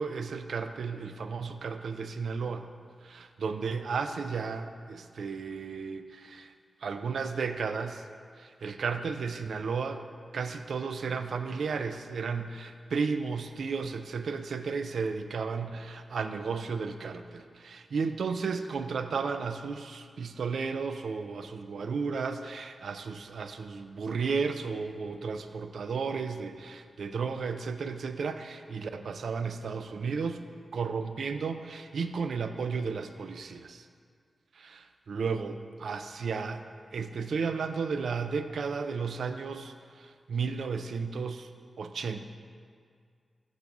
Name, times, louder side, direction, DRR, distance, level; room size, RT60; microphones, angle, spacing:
voice 1, 0.0-2.7 3.0-6.5 6.8-8.0 8.4-10.0 10.3-30.4 30.7-33.9 34.6-36.6 36.9-41.5 41.8-42.3, right 5 dB, 80° right, 9 dB, 0.3 m, -33 dB
7.0 x 4.0 x 4.7 m, 2.2 s
cardioid pair, 60°, 0 cm